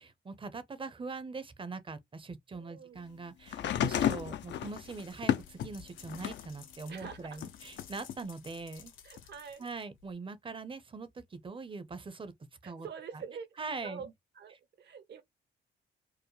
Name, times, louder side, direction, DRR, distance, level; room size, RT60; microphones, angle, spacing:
voice 1, 0.0-8.9 9.6-12.3 12.6-12.9 13.6-14.1, right 4 dB, 25° right, 0.7 m, -42 dB
voice 2, 2.5-3.0 3.8-4.2 6.9-7.4 9.0-9.7 12.6-14.1 14.3-15.2, right 6 dB, 60° right, 1.0 m, -46 dB
sound 1, 3.5-6.5 7.0-8.2 9.2-9.3, left 10 dB, 65° left, 0.5 m, -33 dB
sound 2, 4.5-10.1, left 8 dB, 80° left, 1.4 m, -55 dB
4.7 x 2.1 x 3.1 m
cardioid pair, 90°, 20 cm